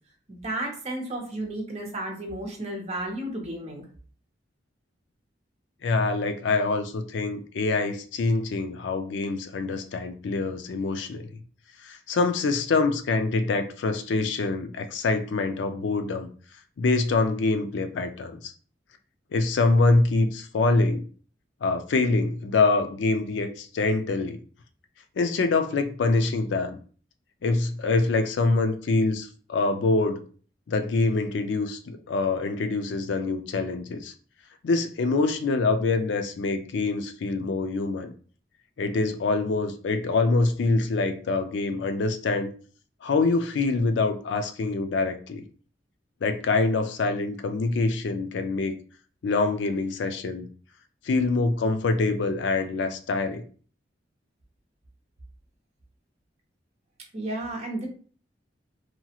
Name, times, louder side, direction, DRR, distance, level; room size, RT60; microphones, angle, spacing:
voice 1, 0.3-3.8 57.1-57.9, right 1 dB, 40° right, 1 dB, 0.8 m, -33 dB
voice 2, 5.8-11.3 11.8-16.3 16.8-18.5 19.3-21.1 21.6-24.4 25.2-26.8 27.4-30.2 30.7-34.1 34.6-38.1 38.8-42.5 43.0-45.4 46.2-48.8 49.2-50.5 51.0-53.4, left 3 dB, 80° left, 8 dB, 0.4 m, -25 dB
2.9 x 2.3 x 2.8 m, 0.42 s
head